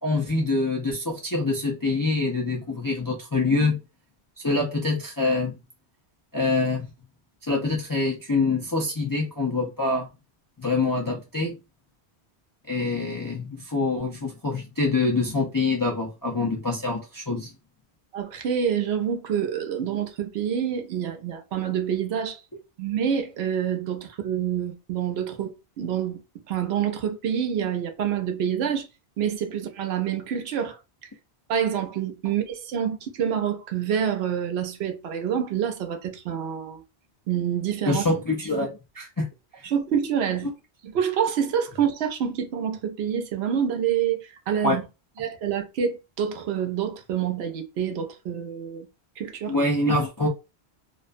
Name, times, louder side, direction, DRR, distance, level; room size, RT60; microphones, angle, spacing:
voice 1, 0.0-3.8 4.4-5.5 6.3-6.9 7.5-10.1 10.6-11.6 12.7-17.5 37.9-39.3 39.6-39.7 44.6-44.8 49.5-50.3, left 3 dB, 35° left, 0.3 m, -25 dB
voice 2, 18.1-22.4 22.8-26.2 26.5-28.9 29.2-30.8 31.5-36.8 37.3-38.1 39.6-40.5 40.8-44.8 45.2-48.9 49.2-49.6, right 8 dB, 75° right, 0.8 m, -27 dB
2.4 x 2.2 x 2.4 m
omnidirectional pair, 1.1 m